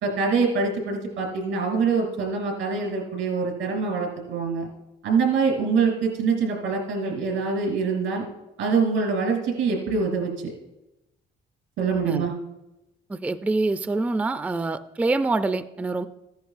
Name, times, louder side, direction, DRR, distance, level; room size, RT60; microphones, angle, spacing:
voice 1, 0.0-4.7 5.0-8.2 8.6-10.5 11.8-12.3, right 5 dB, 90° right, 1 dB, 2.8 m, -24 dB
voice 2, 13.1-16.1, right 3 dB, 5° right, 11 dB, 0.3 m, -25 dB
14.0 x 10.5 x 2.4 m, 0.93 s
cardioid pair, 90°, 20 cm